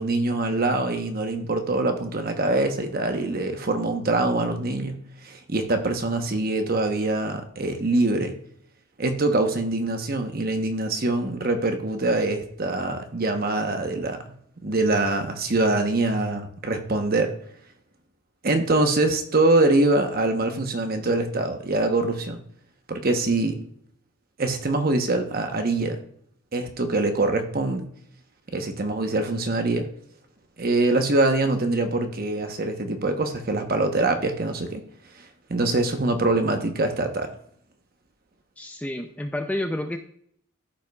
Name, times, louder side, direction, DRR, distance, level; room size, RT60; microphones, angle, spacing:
voice 1, 0.0-4.9 5.2-8.3 9.0-14.2 14.6-17.3 18.4-22.4 22.9-23.6 24.4-26.0 26.5-27.8 28.5-29.9 30.6-34.8 35.5-37.3, right 2 dB, 45° right, 6 dB, 0.9 m, -24 dB
voice 2, 38.6-40.0, left 1 dB, 5° left, 6 dB, 0.4 m, -29 dB
13.0 x 5.5 x 2.3 m, 0.66 s
head